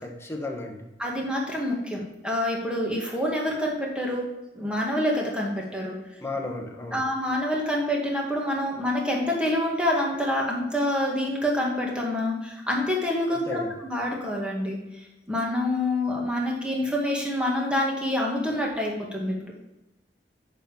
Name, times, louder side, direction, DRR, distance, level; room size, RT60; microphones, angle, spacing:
voice 1, 0.0-0.9 6.2-7.0 13.3-13.7, left 2 dB, 15° left, 1 dB, 1.2 m, -34 dB
voice 2, 1.0-4.2 4.5-6.0 6.9-14.8 15.3-19.5, left 1 dB, 5° right, -2 dB, 1.9 m, -27 dB
6.9 x 5.4 x 7.0 m, 0.95 s
head